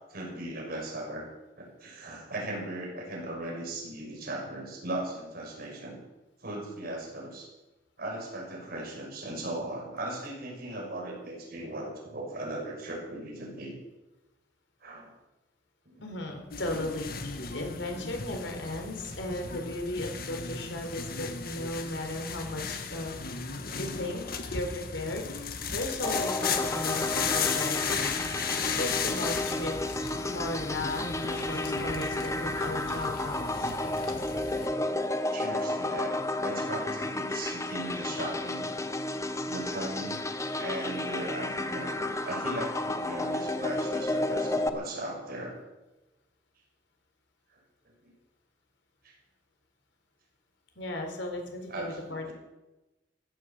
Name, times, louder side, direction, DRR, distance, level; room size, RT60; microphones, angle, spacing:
voice 1, 0.1-1.3 1.6-6.0 6.4-7.5 8.0-13.7 14.8-15.1 15.9-16.0 35.3-38.7 39.4-40.2 40.6-45.6 47.5-47.6 48.0-48.1 49.0-49.1 51.7-52.3, right 1 dB, 55° right, -1 dB, 6.1 m, -38 dB
voice 2, 16.0-23.1 23.8-25.3 25.7-28.1 28.7-33.4 50.8-52.3, left 1 dB, 80° left, 3 dB, 4.0 m, -36 dB
sound 1, 16.5-34.7, left 6 dB, 55° left, 1.7 m, -35 dB
sound 2, 26.0-44.7, left 2 dB, 15° left, 1.0 m, -32 dB
15.5 x 12.5 x 7.2 m, 1.1 s
head